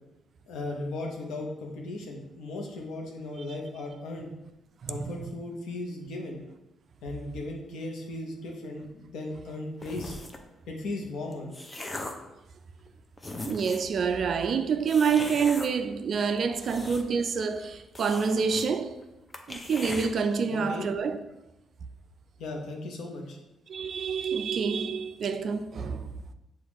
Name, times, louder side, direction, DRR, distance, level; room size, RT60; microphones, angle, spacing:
voice 1, 0.5-4.3 4.9-6.4 7.0-10.2 10.7-11.5 20.5-20.9 22.4-23.4, left 2 dB, 80° left, 0.8 m, -36 dB
voice 2, 4.8-5.2 13.5-19.0 19.5-21.2 23.7-26.1, right 5 dB, 55° right, 0.3 m, -27 dB
sound 1, 9.8-10.5 11.1-12.3 12.9-13.0 13.2-13.9 14.9-15.7 16.4-17.3 17.5-17.6 17.9-18.7 19.0-19.1 19.3-20.1, left 2 dB, 20° left, 0.5 m, -39 dB
6.4 x 2.4 x 3.0 m
cardioid pair, 90°, 0 cm